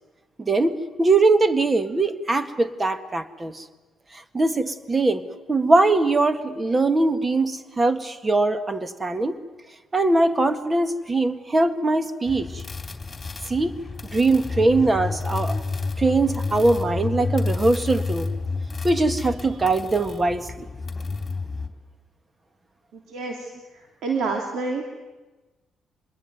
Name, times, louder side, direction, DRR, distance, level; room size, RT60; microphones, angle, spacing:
voice 1, 0.4-3.6 4.1-5.2 5.5-9.4 9.9-12.6 13.5-13.7 14.0-15.6 16.0-18.3 18.8-20.7, right 2 dB, 25° right, 10 dB, 1.8 m, -21 dB
sound 1, 12.3-21.7, left 3 dB, 25° left, 3.5 m, -30 dB
voice 2, 22.9-23.5 24.0-25.0, right 4 dB, 75° right, 2 dB, 3.0 m, -28 dB
26.0 x 21.0 x 9.4 m, 1.2 s
cardioid pair, 90°, 0 cm